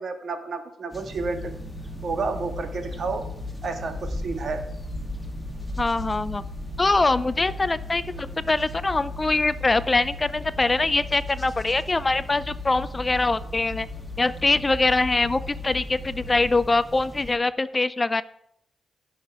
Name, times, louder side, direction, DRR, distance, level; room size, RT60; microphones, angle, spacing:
voice 1, 0.0-1.5 2.0-3.2 3.6-4.6 8.1-8.4, right 4 dB, 55° right, 6 dB, 1.6 m, -31 dB
sound 1, 0.9-17.4, equal, 5° left, 1.9 m, -39 dB
sound 2, 1.1-16.5, left 2 dB, 15° right, 2.8 m, -38 dB
voice 2, 5.8-6.4 6.8-13.9 14.2-18.2, left 3 dB, 25° left, 15 dB, 0.4 m, -23 dB
16.5 x 5.8 x 4.8 m, 0.74 s
cardioid pair, 85°, 0 cm